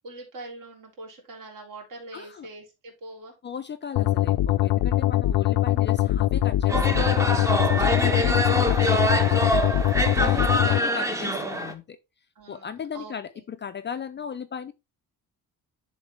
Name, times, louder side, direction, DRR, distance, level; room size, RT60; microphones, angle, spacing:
voice 1, 0.0-3.3 10.1-10.5 10.9-11.1 12.3-13.4, right 2 dB, 60° right, 3.3 m, -44 dB
voice 2, 2.1-2.5 3.4-7.5 7.8-9.4 10.2-12.0 12.5-14.7, left 7 dB, 30° left, 0.5 m, -36 dB
sound 1, 4.0-10.8, left 14 dB, 80° left, 0.6 m, -22 dB
sound 2, 6.7-11.7, right 1 dB, 10° right, 0.7 m, -25 dB
11.0 x 3.9 x 3.3 m
cardioid pair, 160°, 37 cm